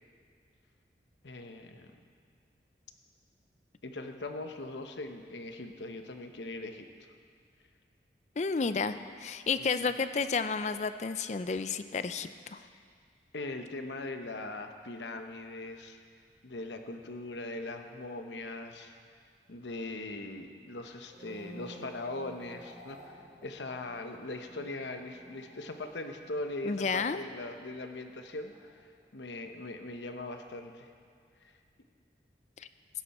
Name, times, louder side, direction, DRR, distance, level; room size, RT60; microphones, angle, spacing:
voice 1, 1.2-1.9 3.8-6.9 9.6-9.9 13.3-16.0 16.4-18.9 19.5-23.1 23.4-28.8 29.1-30.9, left 2 dB, 85° left, 6 dB, 1.0 m, -40 dB
voice 2, 8.4-12.6 26.6-27.2 32.6-32.7, left 4 dB, 40° left, 12 dB, 0.4 m, -31 dB
sound 1, 20.9-29.3 29.6-30.0, equal, 50° right, 2.6 m, -54 dB
16.0 x 10.5 x 4.3 m, 2.1 s
head